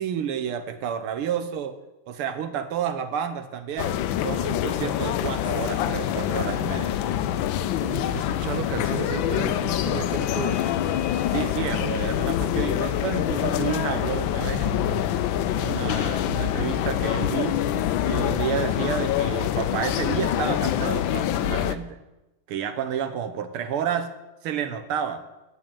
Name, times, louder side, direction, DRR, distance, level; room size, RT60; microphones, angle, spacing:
voice 1, 0.0-1.8 2.1-3.9 4.2-7.0 11.3-15.1 15.5-17.6 18.0-22.0 22.5-24.1 24.4-25.2, right 8 dB, 90° right, 9 dB, 1.9 m, -30 dB
sound 1, 3.8-21.7, left 11 dB, 75° left, 1.3 m, -25 dB
voice 2, 7.8-10.6, right 6 dB, 60° right, 10 dB, 1.1 m, -33 dB
10.0 x 7.1 x 8.9 m, 1.0 s
omnidirectional pair, 2.3 m